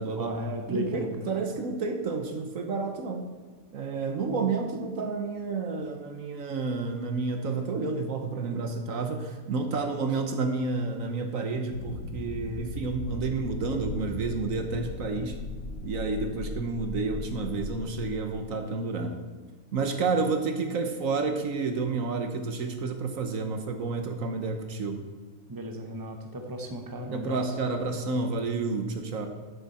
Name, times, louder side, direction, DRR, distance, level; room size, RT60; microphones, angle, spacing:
voice 1, 0.1-1.1 25.5-27.6, equal, 15° right, 3 dB, 1.0 m, -35 dB
voice 2, 0.7-3.3 3.7-15.4 15.8-19.2 19.7-25.0 27.1-29.3, right 4 dB, 65° right, 5 dB, 1.3 m, -30 dB
sound 1, 11.7-18.1, left 2 dB, 75° left, 1.5 m, -38 dB
10.5 x 9.8 x 4.3 m, 1.4 s
omnidirectional pair, 1.5 m